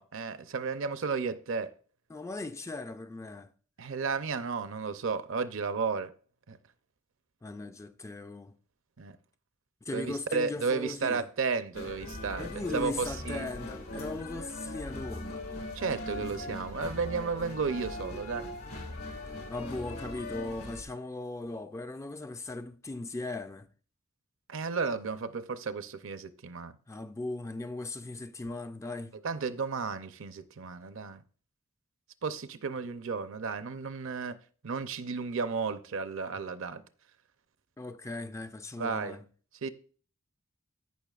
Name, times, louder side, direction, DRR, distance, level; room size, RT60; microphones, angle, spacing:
voice 1, 0.0-1.7 3.8-6.1 6.5-6.6 9.0-9.2 9.9-13.5 15.7-18.5 24.5-26.7 29.2-31.2 32.2-34.4 34.6-36.8 38.8-39.2 39.6-39.7, right 5 dB, 60° right, 0.6 m, -33 dB
voice 2, 2.1-3.5 7.4-8.6 9.8-11.3 12.4-15.5 19.1-19.2 19.5-23.7 26.9-29.1 37.8-39.3, left 2 dB, 15° left, 0.3 m, -38 dB
sound 1, 11.7-20.8, left 1 dB, 80° left, 1.6 m, -40 dB
15.5 x 5.6 x 2.4 m
head